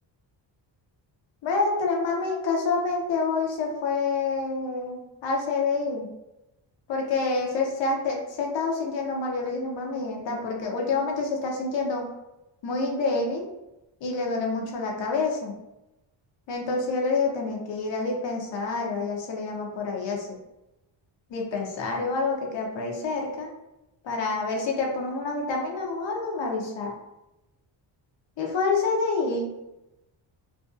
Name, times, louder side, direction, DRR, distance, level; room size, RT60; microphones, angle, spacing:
voice 1, 1.4-6.1 6.9-12.1 12.6-13.5 14.0-15.6 16.5-20.4 21.3-23.5 24.0-26.9 28.4-29.7, left 3 dB, 70° left, 0 dB, 0.7 m, -27 dB
2.5 x 2.3 x 2.5 m, 0.92 s
cardioid pair, 80°, 46 cm